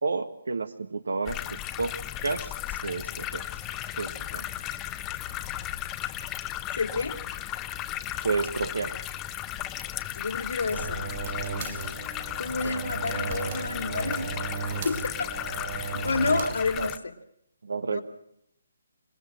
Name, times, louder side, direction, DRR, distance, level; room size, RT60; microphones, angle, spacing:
voice 1, 0.0-3.5 4.0-4.5 8.2-8.9 12.6-13.1 16.2-16.9 17.6-18.0, right 4 dB, 80° right, 11 dB, 1.4 m, -31 dB
sound 1, 1.3-17.0, left 13 dB, 15° left, 1.0 m, -35 dB
voice 2, 6.8-7.1 10.2-11.0 12.4-14.3 14.6-15.3 15.8-17.1 17.9-18.0, left 4 dB, 75° left, 7 dB, 2.7 m, -30 dB
sound 2, 10.7-16.5, right 6 dB, 45° right, 3.4 m, -35 dB
27.0 x 19.0 x 6.2 m, 0.74 s
hypercardioid pair, 155°, 0 cm